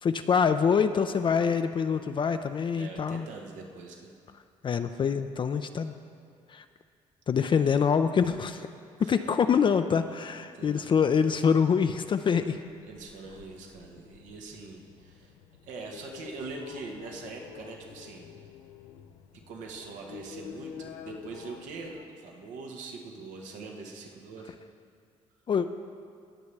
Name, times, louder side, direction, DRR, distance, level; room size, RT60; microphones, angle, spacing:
voice 1, 0.0-3.3 4.6-5.9 6.5-6.6 7.3-8.7 9.0-12.6 25.5-25.7, left 6 dB, 40° left, 9 dB, 0.4 m, -25 dB
voice 2, 2.7-4.1 9.0-9.5 10.5-11.0 12.8-15.3 15.6-18.3 19.5-24.6, right 4 dB, 80° right, 1 dB, 1.3 m, -43 dB
sound 1, 12.4-22.1, left 8 dB, 85° left, 0.5 m, -48 dB
17.5 x 6.9 x 3.3 m, 2.3 s
supercardioid pair, 70°, 13 cm